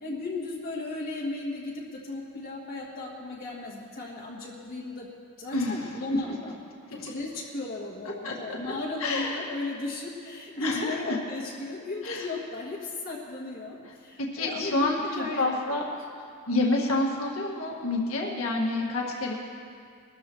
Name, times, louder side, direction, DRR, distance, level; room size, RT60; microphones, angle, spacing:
voice 1, 0.0-5.1 5.4-6.6 6.9-15.9, left 2 dB, 45° left, -4 dB, 1.4 m, -35 dB
voice 2, 5.5-6.3 6.9-7.0 8.2-8.6 9.0-9.4 10.6-11.2 12.0-12.3 14.2-15.8 16.5-19.3, left 2 dB, 70° left, -1 dB, 1.9 m, -28 dB
21.5 x 13.5 x 3.1 m, 2.3 s
head